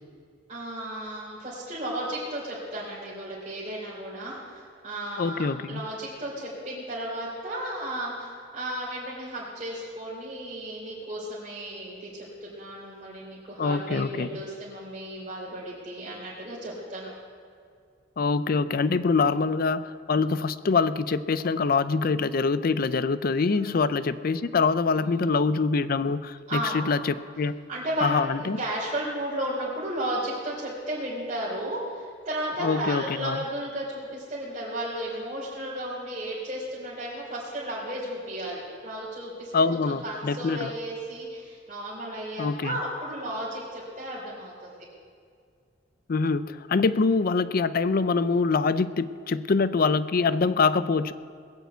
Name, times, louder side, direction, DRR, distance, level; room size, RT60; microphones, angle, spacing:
voice 1, 0.5-17.1 19.2-19.4 23.5-23.9 24.9-25.3 26.5-26.9 27.7-44.8, right 1 dB, 35° right, -9 dB, 3.7 m, -34 dB
voice 2, 5.2-5.8 13.6-14.3 18.2-27.6 28.0-28.6 32.6-33.4 39.5-40.7 42.4-42.7 46.1-51.1, left 4 dB, 50° left, 15 dB, 0.5 m, -24 dB
20.5 x 6.9 x 8.1 m, 2.3 s
head